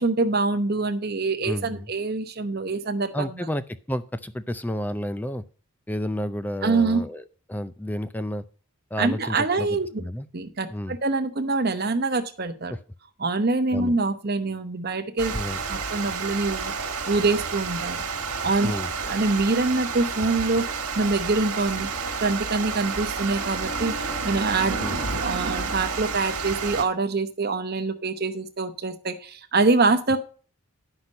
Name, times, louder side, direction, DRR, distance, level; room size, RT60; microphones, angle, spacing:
voice 1, 0.0-3.5 6.6-7.0 9.0-9.9 10.3-12.7 13.2-15.3 15.7-16.7 17.1-18.0 18.4-18.7 19.1-21.9 22.2-24.8 25.2-30.2, right 3 dB, 45° right, 8 dB, 0.9 m, -25 dB
voice 2, 1.4-1.9 3.1-5.4 5.9-8.4 8.9-10.3 10.7-11.0 12.7-12.8 13.7-13.9 15.3-15.6 18.6-18.9 24.8-25.0, left 1 dB, 10° left, 13 dB, 0.4 m, -31 dB
Water, 15.2-26.8, right 4 dB, 90° right, 1.6 m, -30 dB
9.8 x 6.0 x 5.3 m, 0.39 s
head